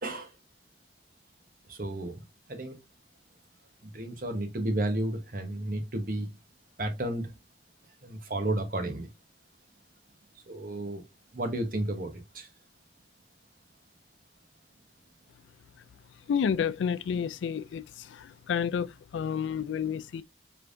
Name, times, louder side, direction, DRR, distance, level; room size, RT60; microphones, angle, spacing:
voice 1, 1.7-2.2 2.5-2.8 3.8-6.3 6.8-7.3 8.0-9.1 10.5-11.0 11.3-12.5, right 1 dB, 50° right, 1.0 m, -32 dB
voice 2, 16.3-17.8 18.5-18.9 19.1-20.2, left 7 dB, 90° left, 0.3 m, -29 dB
5.0 x 3.4 x 2.5 m
head